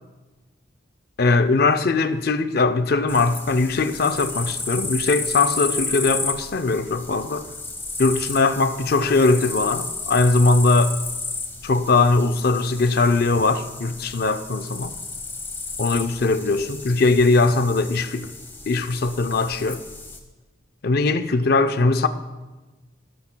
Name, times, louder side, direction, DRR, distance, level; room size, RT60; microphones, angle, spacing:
voice 1, 1.2-7.5 8.0-10.9 11.6-14.9 15.8-18.3 18.7-19.8 20.8-22.1, left 3 dB, 50° left, 0.5 m, -20 dB
sound 1, 3.1-20.2, left 3 dB, 10° left, 1.0 m, -33 dB
20.0 x 13.0 x 2.2 m
head